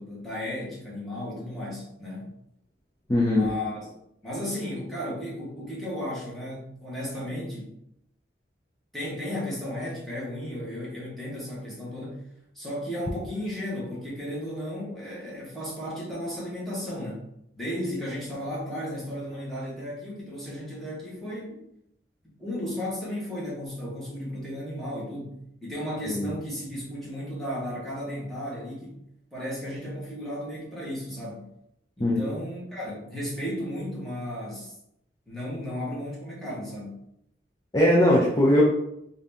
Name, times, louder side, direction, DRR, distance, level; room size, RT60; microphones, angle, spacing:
voice 1, 0.0-2.3 3.3-3.9 4.2-7.7 8.9-12.2 12.5-17.2 17.6-21.6 22.4-29.0 29.3-31.5 32.0-34.7 35.3-37.0, left 1 dB, ahead, -7 dB, 1.3 m, -34 dB
voice 2, 3.1-3.5 26.1-26.3 32.0-32.2 37.7-38.6, left 1 dB, 20° left, -5 dB, 0.6 m, -20 dB
3.9 x 2.7 x 3.4 m, 0.78 s
head